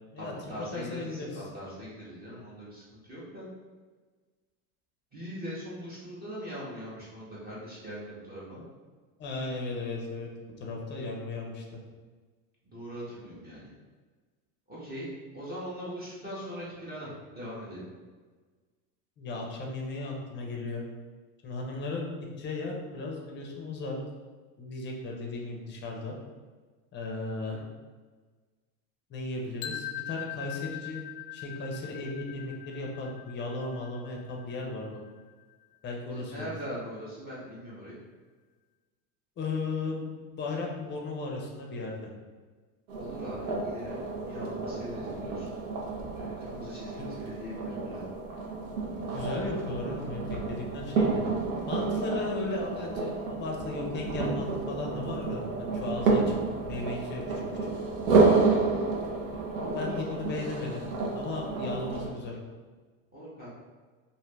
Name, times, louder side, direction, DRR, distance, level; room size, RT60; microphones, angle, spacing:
voice 1, 0.2-3.5 5.1-8.7 12.6-13.7 14.7-15.1 15.3-17.9 27.4-27.6 36.1-38.0 43.0-44.0 44.3-45.5 46.1-48.1 58.4-59.0 59.6-60.0 63.1-63.5, equal, 20° right, -8 dB, 0.7 m, -41 dB
voice 2, 0.7-1.4 9.2-10.3 10.6-11.6 19.2-20.8 21.4-24.0 24.6-26.1 26.9-27.6 29.1-31.0 31.3-35.0 35.8-36.5 39.4-42.1 47.0-47.1 49.1-51.2 51.7-57.7 59.6-60.9 61.1-62.4, left 3 dB, 25° left, 0 dB, 0.5 m, -36 dB
sound 1, 29.6-35.5, left 12 dB, 80° left, 0.5 m, -42 dB
sound 2, 42.9-62.1, right 3 dB, 85° right, 0.8 m, -30 dB
2.6 x 2.4 x 3.2 m, 1.4 s
supercardioid pair, 120°, 44 cm